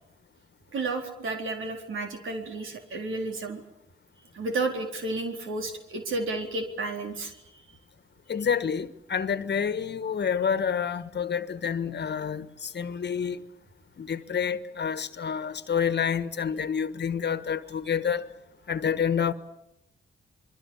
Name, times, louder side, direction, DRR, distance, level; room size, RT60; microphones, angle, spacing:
voice 1, 0.7-3.6 4.3-7.4, right 3 dB, 75° right, 4.1 m, -32 dB
voice 2, 8.3-13.4 14.0-18.2 18.7-19.3, left 7 dB, 55° left, 1.4 m, -28 dB
28.0 x 22.5 x 7.2 m
supercardioid pair, 50°, 21 cm